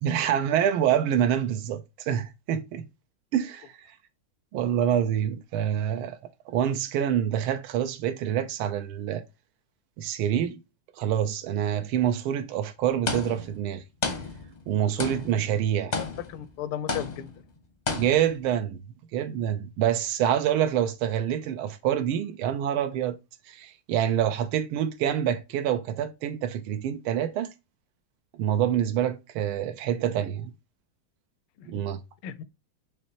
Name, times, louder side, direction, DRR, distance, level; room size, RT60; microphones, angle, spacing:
voice 1, 0.0-2.9 3.3-3.9 4.5-6.2 6.5-9.2 10.0-10.6 11.0-13.8 14.7-15.9 18.0-18.8 19.1-23.1 23.5-27.5 28.4-30.5 31.6-32.0, right 10 dB, 90° right, 1.5 m, -26 dB
sound 1, 13.1-13.7 14.0-14.7 15.0-15.5 15.9-16.5 16.9-17.4 17.9-18.5, left 3 dB, 55° left, 0.4 m, -32 dB
voice 2, 16.0-17.3 31.6-31.7 32.2-32.4, left 11 dB, 85° left, 1.4 m, -35 dB
5.7 x 3.2 x 2.9 m
omnidirectional pair, 2.3 m